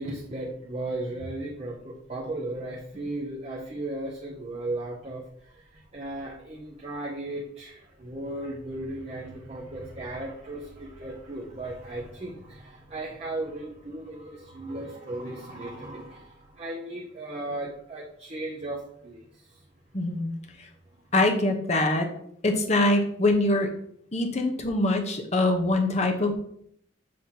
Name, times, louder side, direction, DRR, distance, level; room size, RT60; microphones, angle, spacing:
voice 1, 0.0-19.6, right 2 dB, 30° right, -2 dB, 0.8 m, -36 dB
voice 2, 19.9-20.3 21.1-22.1 22.4-23.7 24.1-26.3, left 2 dB, 35° left, 3 dB, 0.9 m, -23 dB
7.7 x 2.9 x 5.6 m, 0.68 s
head